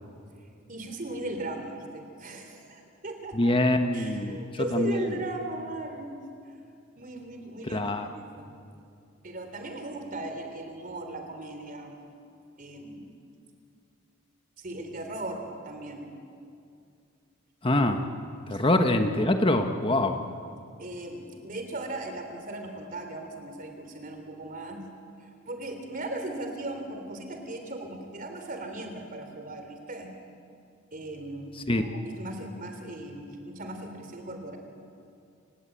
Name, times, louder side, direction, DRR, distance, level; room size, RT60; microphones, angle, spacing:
voice 1, 0.7-3.5 3.9-6.2 6.5-6.6 7.0-8.5 9.2-12.0 12.6-13.1 14.6-16.1 18.5-18.7 20.8-24.9 25.2-30.1 30.9-34.6, right 2 dB, 40° right, 5 dB, 3.4 m, -38 dB
voice 2, 3.3-5.0 7.7-8.1 17.6-18.0 18.5-20.2 31.7-31.8, left 1 dB, 25° left, 6 dB, 1.1 m, -24 dB
29.0 x 17.0 x 9.0 m, 2.4 s
head